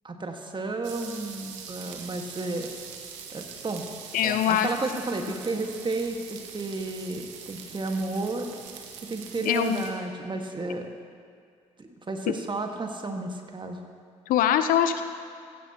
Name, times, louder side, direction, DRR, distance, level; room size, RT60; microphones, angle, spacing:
voice 1, 0.0-2.7 3.3-3.8 4.2-8.5 9.1-10.9 11.8-13.8, right 3 dB, 30° right, 4 dB, 1.7 m, -32 dB
sound 1, 0.8-9.9, right 7 dB, 80° right, 1.1 m, -43 dB
voice 2, 4.1-4.7 9.4-9.8 12.3-12.4 14.3-15.0, left 10 dB, 60° left, 10 dB, 0.6 m, -23 dB
16.0 x 15.5 x 3.0 m, 2.2 s
figure-of-eight pair, 45°, 16 cm